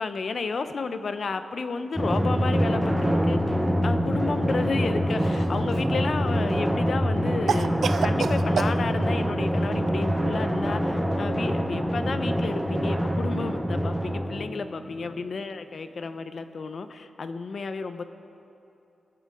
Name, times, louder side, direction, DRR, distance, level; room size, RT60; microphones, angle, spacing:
voice 1, 0.0-3.4 3.8-18.0, left 4 dB, 55° left, 9 dB, 0.7 m, -32 dB
Drum, 2.0-15.0, equal, 5° right, 1.0 m, -25 dB
Cough, 5.2-6.0 7.5-8.8, right 6 dB, 75° right, 0.3 m, -28 dB
23.0 x 7.9 x 4.8 m, 2.9 s
wide cardioid pair, 115°, 0 cm